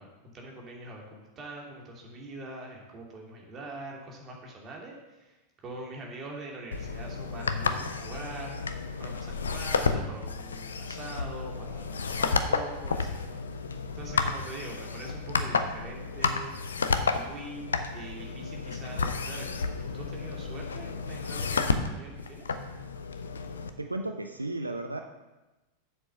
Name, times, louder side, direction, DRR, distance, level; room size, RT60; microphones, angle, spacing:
voice 1, 0.0-13.7 13.9-16.5 17.1-22.5, right 2 dB, 25° right, -1 dB, 2.7 m, -44 dB
sound 1, 6.7-23.7, left 5 dB, 70° left, 0.7 m, -31 dB
voice 2, 23.8-25.0, right 2 dB, 85° right, 5 dB, 0.6 m, -34 dB
7.6 x 6.7 x 6.7 m, 1.1 s
figure-of-eight pair, 90°, 0 cm